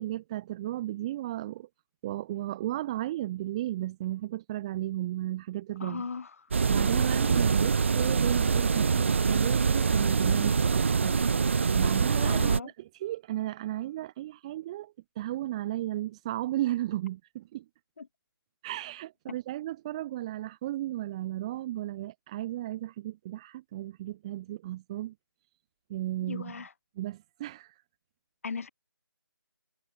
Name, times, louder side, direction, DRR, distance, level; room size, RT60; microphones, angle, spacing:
voice 1, 0.0-1.7 2.0-6.0 6.7-11.2 11.8-17.6 18.6-25.1 25.9-26.6 27.0-27.8, right 14 dB, 15° right, 2.3 m, -34 dB
voice 2, 5.8-6.3 12.2-12.7 18.0-18.1 26.2-26.7 28.4-28.7, left 5 dB, 35° left, 4.9 m, -37 dB
sound 1, 6.5-12.6, right 5 dB, 30° right, 1.0 m, -24 dB
figure-of-eight pair, 155°, 13 cm